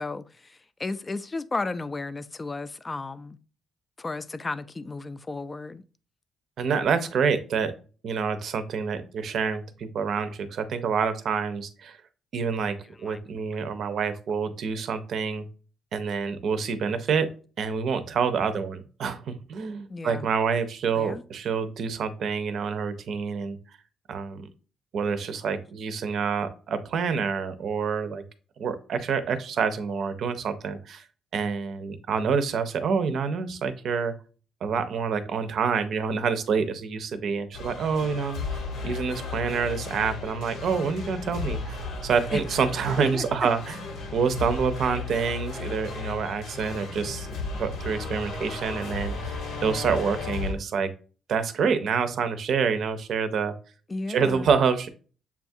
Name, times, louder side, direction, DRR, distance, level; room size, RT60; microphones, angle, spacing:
voice 1, 0.0-3.4 4.0-5.8 13.1-13.2 19.9-20.3 20.9-21.2 42.3-42.4 43.1-43.3 53.9-54.5, left 3 dB, 25° left, 0.3 m, -34 dB
voice 2, 6.6-7.7 8.0-12.0 12.3-15.5 15.9-17.3 17.6-23.6 24.1-24.5 24.9-28.2 28.6-31.0 31.3-34.1 34.6-43.8 44.1-47.3 47.6-50.9 51.3-53.5 54.1-54.9, right 6 dB, 65° right, 0.6 m, -27 dB
sound 1, 37.5-50.5, left 4 dB, 85° left, 1.0 m, -34 dB
7.0 x 2.4 x 2.6 m
cardioid pair, 90°, 0 cm